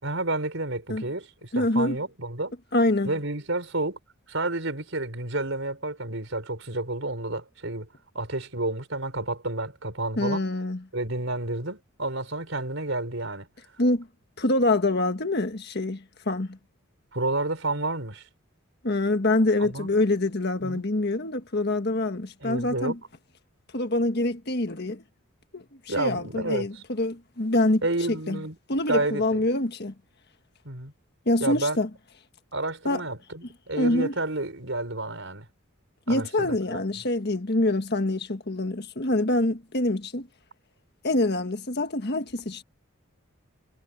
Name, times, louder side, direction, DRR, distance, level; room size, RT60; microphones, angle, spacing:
voice 1, 0.0-2.6 3.1-4.0 4.3-7.9 8.1-10.4 10.9-13.5 17.1-18.2 19.6-19.9 20.6-20.8 22.4-23.0 25.9-26.7 27.8-28.6 28.9-29.2 30.6-30.9 31.4-31.8 32.5-35.5 36.1-36.8, right 2 dB, 65° right, 5.3 m, -30 dB
voice 2, 1.5-2.0 2.7-3.1 10.2-10.8 13.8-14.1 14.4-16.6 18.8-23.0 23.7-25.0 25.5-27.8 28.1-28.4 28.7-29.9 31.2-31.9 32.8-33.0 33.8-34.1 36.1-40.3 41.0-42.6, left 2 dB, 50° left, 1.6 m, -25 dB
head